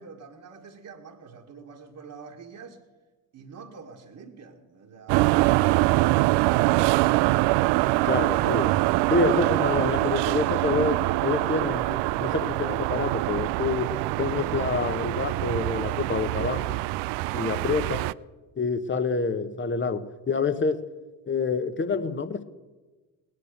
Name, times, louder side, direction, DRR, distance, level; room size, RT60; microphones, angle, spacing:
voice 1, 0.0-2.8 3.3-6.9 17.3-17.7, right 5 dB, 45° right, 1.8 m, -46 dB
sound 1, 5.1-18.1, right 20 dB, 70° right, 0.5 m, -24 dB
voice 2, 8.0-8.8 9.1-13.9 14.2-16.8 17.3-18.0 18.6-20.8 21.3-22.4, left 4 dB, 25° left, 1.2 m, -27 dB
17.5 x 11.0 x 6.6 m
supercardioid pair, 80°, 42 cm